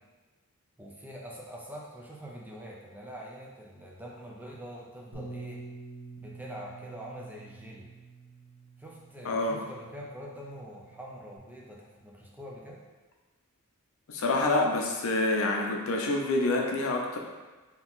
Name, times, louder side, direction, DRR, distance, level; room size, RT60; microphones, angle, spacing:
voice 1, 0.8-5.6 6.2-7.9 8.8-12.8, equal, 10° right, -3 dB, 0.5 m, -44 dB
Bass guitar, 5.1-11.4, right 3 dB, 80° right, 1.5 m, -47 dB
voice 2, 9.2-9.6 14.1-17.2, left 2 dB, 65° left, 1 dB, 0.6 m, -27 dB
3.9 x 2.9 x 3.9 m, 1.3 s
head